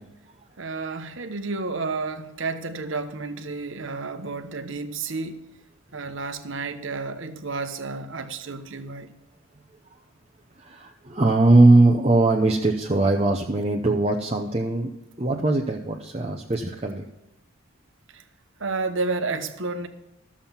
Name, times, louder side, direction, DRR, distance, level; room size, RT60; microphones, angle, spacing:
voice 1, 0.6-5.4 5.9-9.1 18.1-18.2 18.6-19.9, right 3 dB, 60° right, 1.0 m, -31 dB
voice 2, 10.6-14.9 15.2-17.1, right 2 dB, 30° right, 0.7 m, -20 dB
13.5 x 7.4 x 5.7 m
head